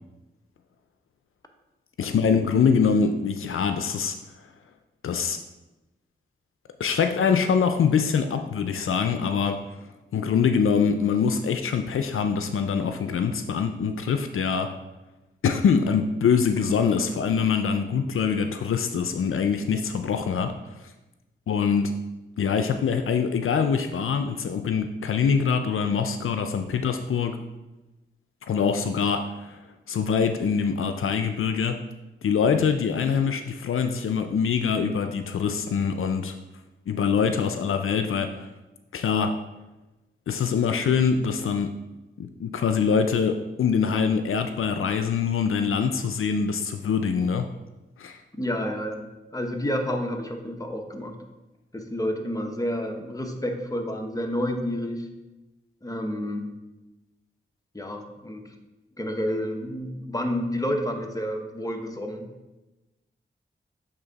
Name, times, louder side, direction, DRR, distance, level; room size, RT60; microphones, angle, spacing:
voice 1, 2.0-4.2 5.0-5.4 6.8-9.6 10.1-14.7 15.4-20.5 21.5-21.9 22.4-27.4 28.4-29.6 29.9-31.8 32.2-36.4 36.9-38.5 38.9-39.3 40.3-41.7 42.2-47.5 48.0-48.2, left 6 dB, 80° left, 7 dB, 0.4 m, -24 dB
voice 2, 48.4-51.2 51.7-55.1 55.8-56.5 57.7-58.4 59.0-62.3, equal, 15° left, 4 dB, 1.0 m, -29 dB
7.9 x 3.4 x 4.0 m, 1.0 s
cardioid pair, 45°, 21 cm